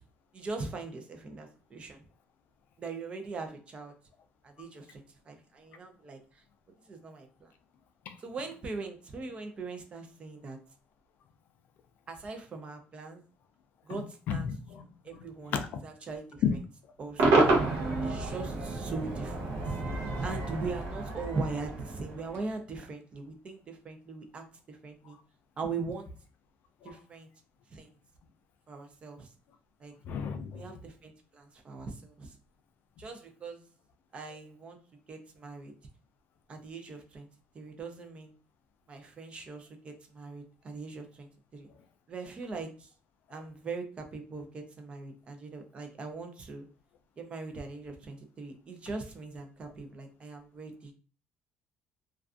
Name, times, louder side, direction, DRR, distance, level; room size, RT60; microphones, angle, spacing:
voice 1, 0.3-2.0 2.8-3.9 4.4-6.2 6.9-7.5 8.2-10.6 12.1-13.2 13.8-14.5 15.0-15.6 15.8-16.6 17.0-17.5 18.0-19.8 20.2-25.2 25.6-26.1 26.8-27.3 27.7-27.9 28.7-29.3 29.8-29.9 30.5-32.4 33.0-33.6 34.1-34.8 35.1-35.7 36.5-37.3 37.5-38.3 38.9-41.7 42.1-42.9 43.3-46.7 47.2-50.9, right 4 dB, 30° right, 0.4 m, -40 dB
voice 2, 14.3-14.8 15.5-15.7 26.8-26.9 30.1-30.7, left 6 dB, 60° left, 0.3 m, -34 dB
Cheering / Crowd / Fireworks, 17.2-22.5, right 2 dB, 85° right, 0.7 m, -29 dB
2.4 x 2.3 x 2.4 m
cardioid pair, 160°, 4 cm